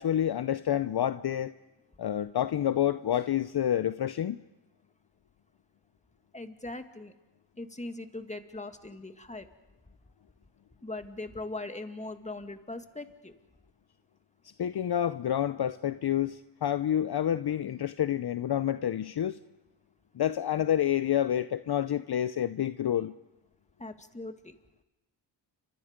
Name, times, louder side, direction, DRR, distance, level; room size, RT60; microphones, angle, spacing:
voice 1, 0.0-1.5 2.0-4.4 14.6-19.4 20.1-23.1, left 10 dB, 55° left, 0.7 m, -28 dB
voice 2, 6.3-7.1 7.6-9.5 10.8-13.4 23.8-24.5, left 2 dB, 15° left, 2.0 m, -40 dB
29.5 x 24.5 x 5.2 m
cardioid pair, 65°, 48 cm